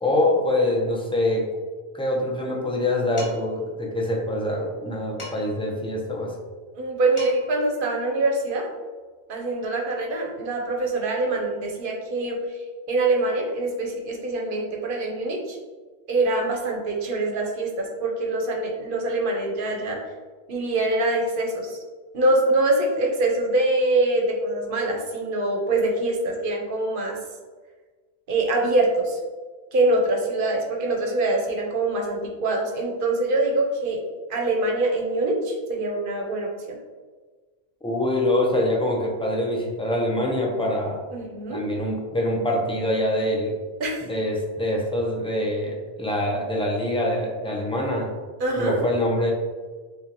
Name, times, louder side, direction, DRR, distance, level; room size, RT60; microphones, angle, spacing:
voice 1, 0.0-1.5 1.9-6.4 37.8-41.0 41.5-43.6 44.0-48.1 48.6-49.3, left 1 dB, 5° left, -1 dB, 0.5 m, -24 dB
Dishes pots and pans, 3.2-3.6 5.2-5.7 6.8-6.9 7.2-7.6, left 1 dB, 30° left, 1.4 m, -38 dB
voice 2, 6.7-8.7 9.3-12.4 12.9-15.6 16.1-20.0 20.5-21.8 22.1-27.2 28.3-29.2 29.7-34.0 34.3-36.8 41.1-41.6 43.8-44.0 48.4-48.8, right 2 dB, 55° right, 1 dB, 1.0 m, -24 dB
6.8 x 2.4 x 2.9 m, 1.4 s
omnidirectional pair, 1.1 m